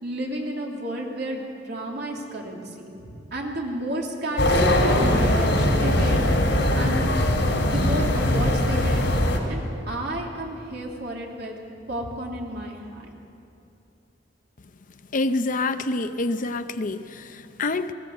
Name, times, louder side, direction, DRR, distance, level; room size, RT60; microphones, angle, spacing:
voice 1, 0.0-6.2 6.7-7.1 7.6-9.1 9.5-11.6 11.9-13.1, right 1 dB, 65° right, 0 dB, 2.9 m, -31 dB
sound 1, 4.4-9.4, left 1 dB, 80° left, 3.1 m, -21 dB
voice 2, 15.1-17.9, left 2 dB, 45° left, 10 dB, 0.7 m, -27 dB
20.0 x 17.0 x 7.9 m, 2.7 s
head